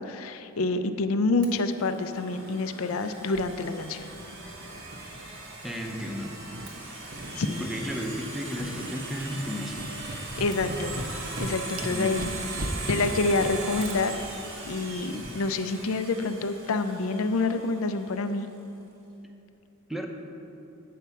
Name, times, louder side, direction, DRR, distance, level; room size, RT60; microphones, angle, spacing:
voice 1, 0.0-4.0 7.4-7.7 10.4-10.9 11.4-12.3 12.6-14.1 14.7-18.5, left 3 dB, 75° left, 9 dB, 0.5 m, -27 dB
Domestic sounds home sounds, 1.4-18.2, right 3 dB, 65° right, 1.3 m, -40 dB
sound 1, 3.3-3.4 4.0-5.5 5.8-6.6 7.1-7.3 7.7-8.1 8.4-8.9 9.2-15.4, right 1 dB, 45° right, 0.8 m, -39 dB
voice 2, 5.6-6.3 7.6-9.8 11.9-12.2 19.9-20.1, equal, ahead, 2 dB, 0.6 m, -33 dB
8.3 x 4.6 x 6.9 m, 2.8 s
head